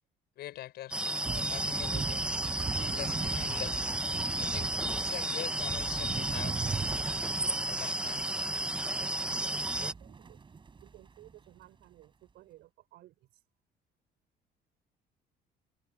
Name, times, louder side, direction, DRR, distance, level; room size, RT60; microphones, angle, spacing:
voice 1, 0.4-1.0 1.2-2.3 2.7-3.9 4.4-6.6 7.5-8.2, left 14 dB, 75° left, 6.1 m, -44 dB
sound 1, 0.9-9.9, right 1 dB, 5° right, 1.1 m, -33 dB
sound 2, 1.2-11.3, right 5 dB, 30° right, 4.9 m, -40 dB
voice 2, 9.0-10.4 10.8-13.3, right 16 dB, 80° right, 5.8 m, -55 dB
cardioid pair, 110°, 17 cm